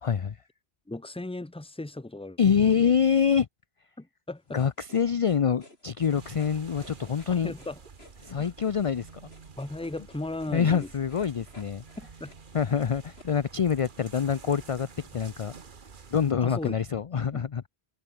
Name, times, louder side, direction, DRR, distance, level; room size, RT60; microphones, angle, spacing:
voice 1, 0.0-0.4 2.4-3.5 4.5-7.5 8.2-9.1 10.5-11.8 12.5-15.5 16.1-17.7, left 7 dB, 40° left, 0.5 m, -25 dB
voice 2, 0.9-2.9 4.0-4.6 7.3-7.8 8.3-8.5 9.6-10.9 12.0-12.3 16.4-16.7 17.3-17.4, left 2 dB, 5° left, 0.8 m, -37 dB
sound 1, 4.5-13.3, left 1 dB, 70° left, 6.1 m, -55 dB
sound 2, 6.1-16.3, right 5 dB, 50° right, 1.4 m, -50 dB
omnidirectional pair, 1.1 m